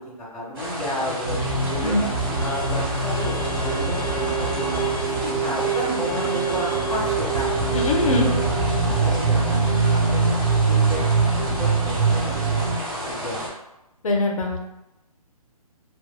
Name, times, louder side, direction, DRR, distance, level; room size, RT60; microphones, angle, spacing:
voice 1, 0.1-1.4 1.7-2.1 2.4-4.8 5.2-7.5 7.9-9.6 9.9-11.0 11.4-12.7 13.1-13.5, equal, 5° left, -10 dB, 0.4 m, -32 dB
sound 1, 0.5-13.5, equal, 25° right, 1.2 m, -31 dB
sound 2, 1.2-12.8, right 4 dB, 70° right, 0.7 m, -23 dB
Bowed string instrument, 2.2-7.4, left 4 dB, 30° left, 0.9 m, -38 dB
voice 2, 7.7-8.3 14.0-14.6, left 2 dB, 60° left, 2 dB, 0.5 m, -22 dB
2.8 x 2.0 x 2.2 m, 0.93 s
figure-of-eight pair, 140°, 20 cm